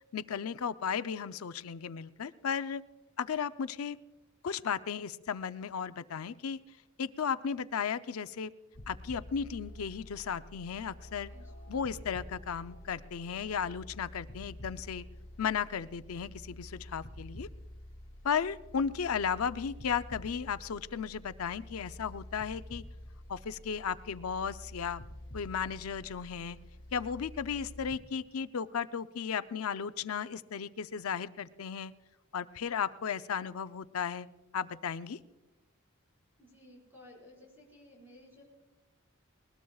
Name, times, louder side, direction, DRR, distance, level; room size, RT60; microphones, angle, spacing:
voice 1, 0.1-2.8 3.2-4.0 4.4-6.6 7.0-8.5 8.9-11.3 11.7-15.0 15.4-17.5 18.2-22.8 23.3-25.0 25.3-26.6 26.9-31.9 32.3-34.3 34.5-35.2, left 7 dB, 90° left, 13 dB, 0.5 m, -35 dB
sound 1, 8.7-28.0, left 1 dB, 60° left, 2.1 m, -49 dB
voice 2, 36.4-38.4, left 1 dB, 10° right, -3 dB, 5.0 m, -55 dB
20.5 x 20.0 x 2.3 m, 1.1 s
head